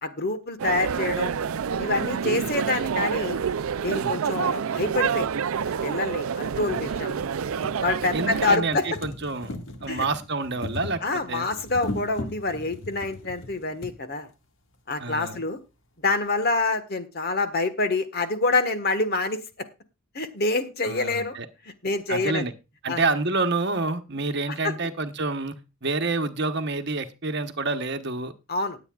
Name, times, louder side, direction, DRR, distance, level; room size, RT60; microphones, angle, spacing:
voice 1, 0.0-1.3 1.8-3.4 3.8-5.3 5.8-7.2 7.8-8.8 9.9-10.0 11.0-14.3 14.9-15.6 16.0-19.4 20.1-21.4 21.6-22.4 22.9-23.0 24.5-24.7 28.5-28.8, left 3 dB, 45° left, 9 dB, 1.4 m, -26 dB
sound 1, 0.6-8.6, right 7 dB, 80° right, 0.4 m, -27 dB
voice 2, 2.2-2.5 3.9-4.2 8.1-9.5 9.8-11.5 15.0-15.4 20.8-21.5 22.1-22.5 22.8-25.6 25.8-28.3, right 3 dB, 50° right, 7 dB, 1.1 m, -28 dB
sound 2, 4.4-4.5 5.5-5.6 6.0-6.1 6.4-14.0 14.9-15.0 15.2-15.3, left 2 dB, 65° left, 1.8 m, -39 dB
20.0 x 8.3 x 2.4 m, 0.27 s
head